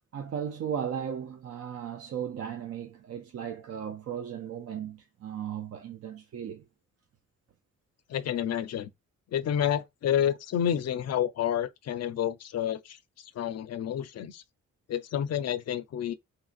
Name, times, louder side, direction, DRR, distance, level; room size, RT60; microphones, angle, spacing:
voice 1, 0.1-6.7, right 8 dB, 50° right, 0.4 m, -36 dB
voice 2, 8.1-8.9 9.3-13.0 13.4-14.4 14.9-16.1, left 10 dB, 55° left, 0.4 m, -29 dB
2.9 x 2.4 x 2.4 m
cardioid pair, 75°, 32 cm